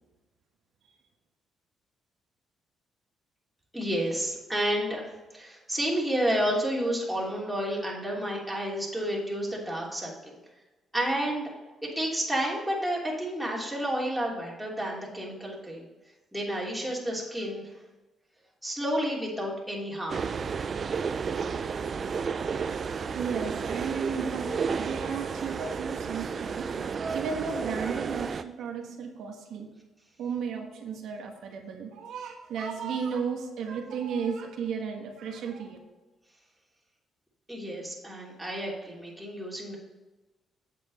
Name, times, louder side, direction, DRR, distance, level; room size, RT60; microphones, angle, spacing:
voice 1, 3.7-5.0 5.3-10.4 10.9-11.5 11.8-15.9 16.3-17.6 18.6-20.2 37.5-39.8, equal, 5° right, -4 dB, 3.1 m, -30 dB
sound 1, 20.1-28.4, right 5 dB, 45° right, 0.5 m, -32 dB
voice 2, 23.1-29.7 30.2-35.8, right 6 dB, 75° right, 2 dB, 1.3 m, -34 dB
8.4 x 7.6 x 4.2 m, 1.2 s
cardioid pair, 90°, 0 cm